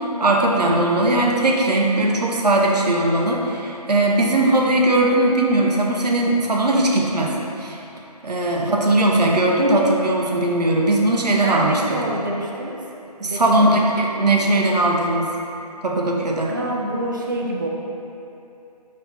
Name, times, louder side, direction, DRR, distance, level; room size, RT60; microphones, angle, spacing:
voice 1, 0.0-7.8 8.2-12.0 13.2-15.3 15.8-16.5, right 1 dB, 80° right, -1 dB, 0.8 m, -19 dB
voice 2, 11.4-12.8 13.2-13.7 16.5-17.7, right 1 dB, 30° right, -1 dB, 0.4 m, -27 dB
4.2 x 3.1 x 4.1 m, 2.8 s
figure-of-eight pair, 155°, 21 cm